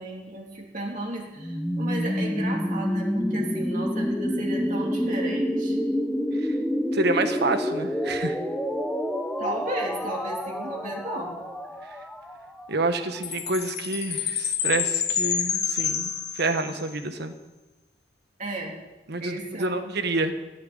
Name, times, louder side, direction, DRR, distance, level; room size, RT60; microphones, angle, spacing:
voice 1, 0.0-5.8 9.4-11.4 18.4-18.7 19.2-19.9, right 1 dB, 45° right, -1 dB, 2.9 m, -34 dB
sound 1, 1.4-13.2, equal, ahead, 0.8 m, -28 dB
voice 2, 6.9-8.4 12.7-17.3 19.1-20.3, right 2 dB, 60° right, 8 dB, 1.3 m, -28 dB
Chime, 13.2-16.9, left 8 dB, 60° left, 1.5 m, -28 dB
15.0 x 7.9 x 9.6 m, 1.1 s
head